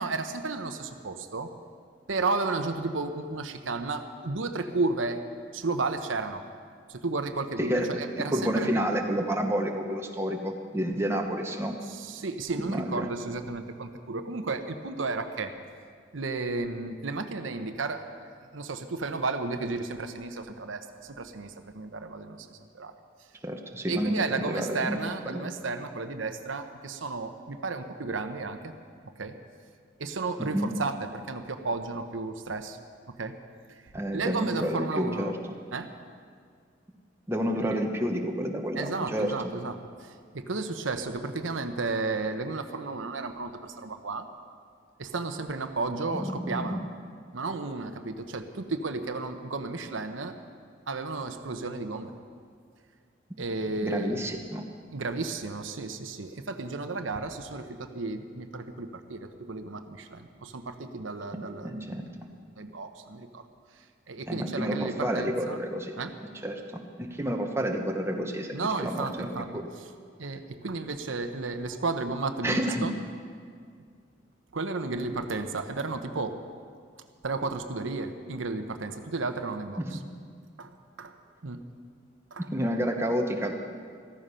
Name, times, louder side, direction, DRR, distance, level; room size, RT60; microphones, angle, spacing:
voice 1, 0.0-1.5 2.1-5.2 5.5-6.4 6.9-8.8 11.8-15.5 16.1-22.9 23.9-28.7 29.2-29.3 30.0-32.8 33.1-33.4 33.7-33.8 34.1-35.3 35.7-35.9 37.6-37.8 38.8-44.3 45.0-46.8 47.3-50.4 50.9-52.1 53.4-54.2 54.9-63.4 63.8-65.6 66.0-66.2 68.5-69.9 70.2-73.0 74.5-76.3 77.2-80.0 80.6-80.7 81.0-81.1 81.4-81.6 82.3-82.5, right 3 dB, 85° right, 7 dB, 0.9 m, -33 dB
voice 2, 7.6-11.7 12.7-13.1 23.4-25.0 25.3-25.4 30.4-30.7 33.9-35.3 37.3-39.3 46.1-46.8 53.8-54.6 61.6-62.0 64.3-66.0 66.4-69.3 69.5-69.7 72.4-72.9 79.8-79.9 82.4-83.5, equal, 15° right, 2 dB, 1.0 m, -30 dB
14.5 x 14.0 x 5.6 m, 2.1 s
head